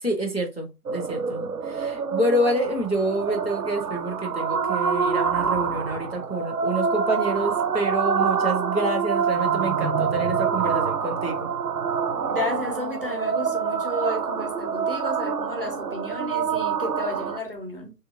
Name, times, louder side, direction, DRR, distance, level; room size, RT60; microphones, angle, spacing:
voice 1, 0.0-11.5, right 1 dB, 45° left, 0.5 m, -27 dB
sound 1, 0.9-17.4, right 6 dB, 80° right, 0.6 m, -26 dB
voice 2, 12.2-17.9, left 2 dB, 35° right, 0.5 m, -33 dB
2.7 x 2.1 x 2.5 m
figure-of-eight pair, 165°, 47 cm